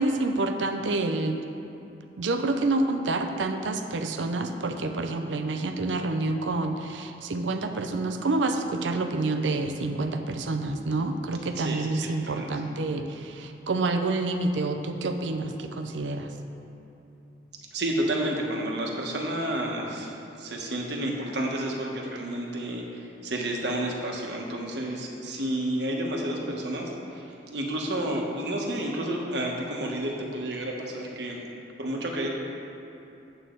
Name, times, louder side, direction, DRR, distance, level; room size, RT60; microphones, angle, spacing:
voice 1, 0.0-1.4 2.2-16.3, right 2 dB, 85° right, 6 dB, 0.6 m, -28 dB
voice 2, 11.6-12.5 17.7-20.1 20.4-31.4 31.8-32.3, right 1 dB, 65° right, -1 dB, 1.3 m, -30 dB
9.2 x 8.0 x 3.9 m, 2.9 s
head